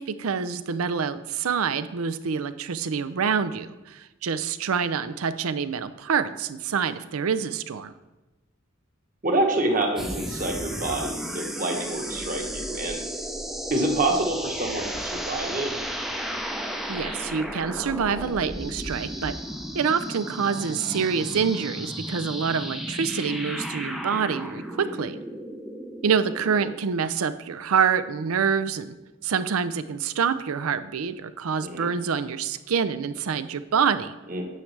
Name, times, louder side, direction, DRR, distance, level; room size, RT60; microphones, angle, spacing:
voice 1, 0.0-7.9 16.9-19.4 19.7-25.2 26.0-28.9 29.2-34.1, right 6 dB, 85° right, 13 dB, 0.5 m, -26 dB
voice 2, 9.2-13.0 13.7-15.7 24.8-25.1 31.6-31.9 34.3-34.5, right 2 dB, 40° right, 2 dB, 1.2 m, -27 dB
sound 1, 10.0-26.8, equal, ahead, 0.5 m, -34 dB
9.4 x 7.2 x 3.3 m, 1.1 s
head